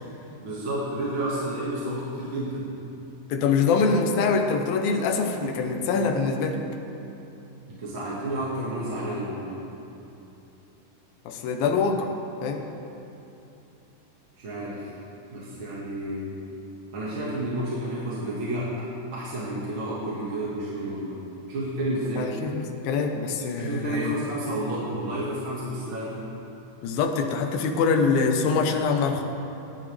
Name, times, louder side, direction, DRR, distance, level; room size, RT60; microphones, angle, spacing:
voice 1, 0.4-2.7 7.7-9.6 14.4-14.9 15.3-16.4 16.9-21.2 21.5-22.3 23.5-26.3, right 1 dB, 45° right, -7 dB, 2.1 m, -31 dB
voice 2, 3.3-6.6 11.3-12.1 12.4-12.7 22.2-24.1 26.8-29.2, left 4 dB, 85° left, 4 dB, 2.8 m, -24 dB
21.5 x 11.0 x 3.4 m, 2.9 s
omnidirectional pair, 4.1 m